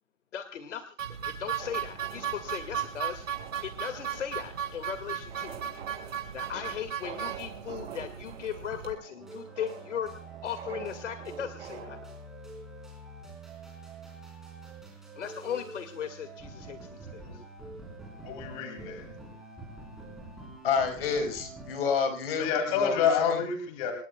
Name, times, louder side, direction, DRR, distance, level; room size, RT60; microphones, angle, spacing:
voice 1, 0.3-0.9 1.3-3.3 3.6-5.6 6.3-10.1 10.4-12.0 15.2-17.4, left 8 dB, 65° left, 8 dB, 2.1 m, -37 dB
sound 1, 1.0-8.9, right 9 dB, 85° right, 5.0 m, -36 dB
sound 2, 1.6-12.2, right 8 dB, 55° right, 5.7 m, -47 dB
sound 3, 9.2-21.8, right 3 dB, ahead, 3.9 m, -46 dB
voice 2, 18.2-19.1 22.4-23.9, left 7 dB, 25° left, 5 dB, 2.5 m, -28 dB
voice 3, 20.6-23.4, left 5 dB, 50° left, 6 dB, 4.8 m, -29 dB
28.0 x 18.0 x 2.3 m, 0.34 s
hypercardioid pair, 165°, 39 cm